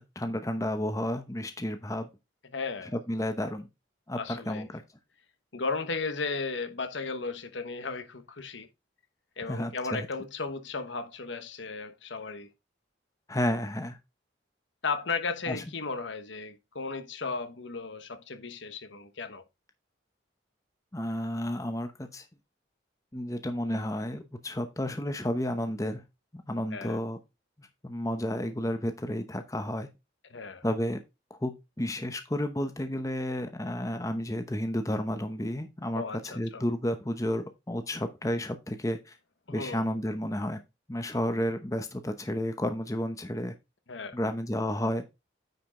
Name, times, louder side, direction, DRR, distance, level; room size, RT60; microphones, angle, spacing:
voice 1, 0.0-2.1 2.9-3.7 4.1-4.8 9.4-10.1 13.3-14.0 15.5-15.6 20.9-22.2 23.1-26.0 26.3-27.2 27.6-29.9 30.6-31.0 31.3-39.2 39.5-40.6 40.9-43.5 44.1-45.0, left 1 dB, 15° left, 0.8 m, -32 dB
voice 2, 2.5-2.9 4.2-4.7 5.5-8.7 9.4-12.5 14.8-19.4 26.7-27.0 30.3-30.6 35.9-36.6 39.5-39.8 43.9-44.2, left 4 dB, 75° left, 1.1 m, -35 dB
9.3 x 5.0 x 3.7 m
head